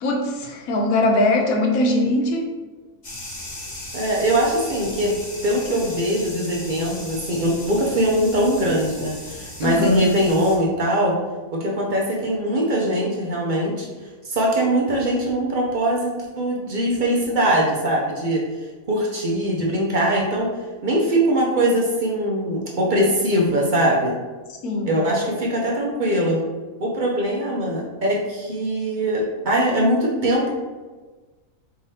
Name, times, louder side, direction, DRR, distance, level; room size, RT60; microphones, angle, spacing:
voice 1, 0.0-2.5 9.6-10.1 24.6-25.0, left 1 dB, 80° left, 2 dB, 1.1 m, -21 dB
sound 1, 3.0-10.6, left 1 dB, 35° left, 0.9 m, -37 dB
voice 2, 3.9-5.1 5.4-11.2 11.5-13.9 14.2-20.5 20.8-24.1 24.9-26.4 26.8-30.5, right 1 dB, 50° right, -3 dB, 0.6 m, -21 dB
4.6 x 3.5 x 2.7 m, 1.3 s
omnidirectional pair, 1.5 m